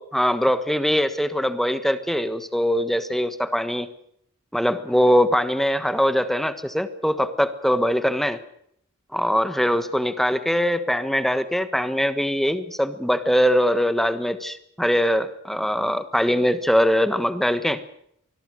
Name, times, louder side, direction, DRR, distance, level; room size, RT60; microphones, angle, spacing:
voice 1, 0.0-3.9 4.5-8.4 9.1-17.8, equal, ahead, 11 dB, 1.3 m, -22 dB
25.0 x 20.5 x 6.6 m, 0.72 s
head